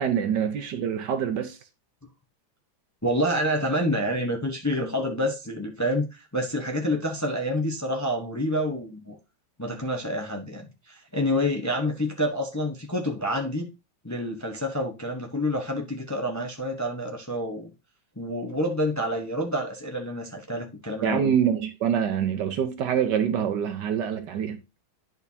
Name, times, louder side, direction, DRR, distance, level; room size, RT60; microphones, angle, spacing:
voice 1, 0.0-1.6 21.0-24.6, right 8 dB, 65° right, 1.2 m, -25 dB
voice 2, 3.0-9.2 9.6-13.7 14.0-17.7 18.2-21.3, equal, 20° left, 0.4 m, -28 dB
10.5 x 4.5 x 2.7 m
omnidirectional pair, 2.2 m